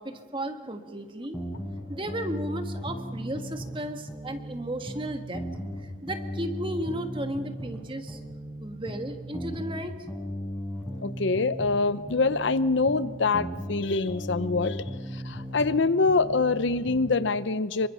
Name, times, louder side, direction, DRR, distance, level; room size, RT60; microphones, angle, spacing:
voice 1, 0.0-1.4 1.9-5.4 5.8-8.2 8.6-9.9, right 1 dB, 25° right, 6 dB, 1.6 m, -34 dB
sound 1, 1.3-3.8 4.1-7.8 8.1-11.8 12.1-15.8 16.1-17.2, equal, 5° left, 5.1 m, -36 dB
voice 2, 11.0-14.8 15.1-17.9, left 3 dB, 65° left, 14 dB, 0.7 m, -25 dB
26.5 x 24.0 x 5.7 m, 1.4 s
head